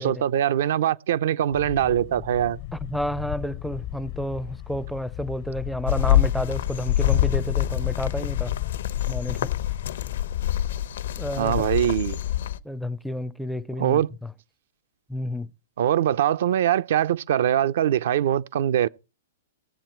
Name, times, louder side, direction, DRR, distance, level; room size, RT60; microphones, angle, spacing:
voice 1, 0.0-2.6 11.4-12.2 13.8-14.1 15.8-18.9, right 10 dB, 65° right, 0.6 m, -22 dB
sound 1, 1.5-10.3, left 14 dB, 45° left, 0.7 m, -35 dB
voice 2, 2.7-8.5 9.1-9.4 11.2-11.6 12.6-14.3 15.1-15.5, equal, ahead, 0.5 m, -31 dB
sound 2, 5.9-12.6, left 12 dB, 70° left, 1.0 m, -25 dB
19.0 x 7.4 x 4.5 m
hypercardioid pair, 150°, 0 cm